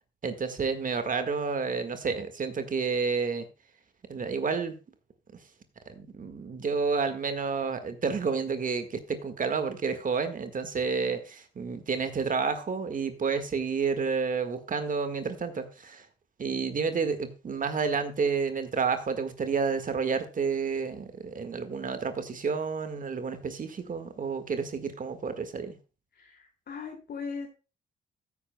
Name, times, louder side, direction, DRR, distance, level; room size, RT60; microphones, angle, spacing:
voice 1, 0.2-3.5 4.1-4.7 5.9-16.1 16.4-25.8, right 5 dB, 40° right, 9 dB, 1.7 m, -30 dB
voice 2, 26.1-27.5, left 5 dB, 55° left, 2 dB, 2.5 m, -39 dB
15.0 x 9.0 x 2.2 m, 0.31 s
cardioid pair, 90°, 20 cm